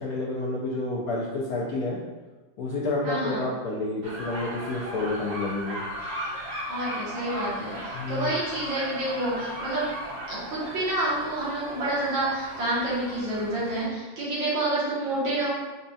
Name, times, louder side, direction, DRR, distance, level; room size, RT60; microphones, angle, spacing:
voice 1, 0.0-2.0 2.6-5.8 7.9-8.3, left 2 dB, 70° left, -4 dB, 0.9 m, -29 dB
voice 2, 3.0-3.4 6.7-9.9 10.3-15.5, right 1 dB, 85° right, -7 dB, 2.0 m, -28 dB
sound 1, 4.0-13.8, equal, 50° right, 0.8 m, -37 dB
5.2 x 2.3 x 2.7 m, 1.2 s
omnidirectional pair, 2.1 m